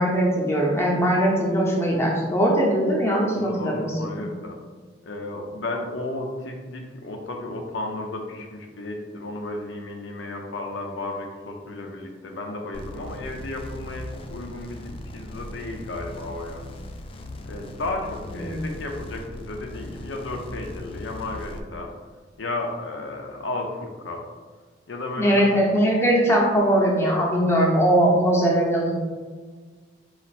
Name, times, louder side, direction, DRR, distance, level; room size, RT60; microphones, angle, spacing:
voice 1, 0.0-3.9 18.4-18.6 25.2-28.9, right 1 dB, 15° left, -3 dB, 0.7 m, -20 dB
voice 2, 3.3-4.6 5.0-16.6 17.5-21.9 22.4-24.2 24.9-25.6, left 2 dB, 80° left, 2 dB, 0.6 m, -33 dB
sound 1, 12.7-21.6, left 1 dB, 30° left, 0.3 m, -39 dB
4.3 x 2.5 x 4.1 m, 1.5 s
head